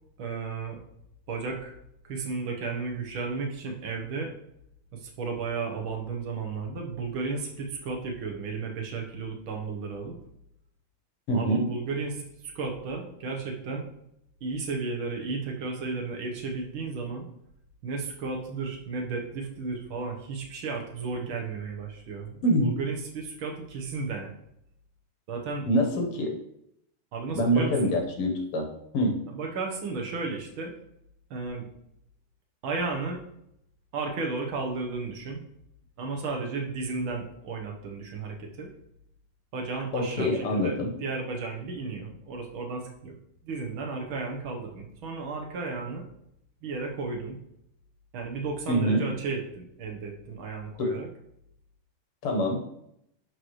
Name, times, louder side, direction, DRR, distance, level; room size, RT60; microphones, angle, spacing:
voice 1, 0.2-0.8 1.3-1.7 2.0-4.3 4.9-10.2 11.3-13.9 14.4-17.3 17.8-24.3 25.3-25.7 27.1-27.9 29.3-30.7 31.3-31.7 32.6-33.2 33.9-35.4 36.0-38.7 39.5-43.2 43.4-46.1 46.6-47.4 48.1-51.1, right 4 dB, 65° right, 2 dB, 2.0 m, -33 dB
voice 2, 11.3-11.6 22.4-22.7 25.7-26.3 27.3-28.7 28.9-29.2 39.9-40.9 48.7-49.0 50.8-51.0 52.2-52.6, equal, 90° left, 2 dB, 2.3 m, -25 dB
10.5 x 4.9 x 3.2 m, 0.77 s
omnidirectional pair, 2.4 m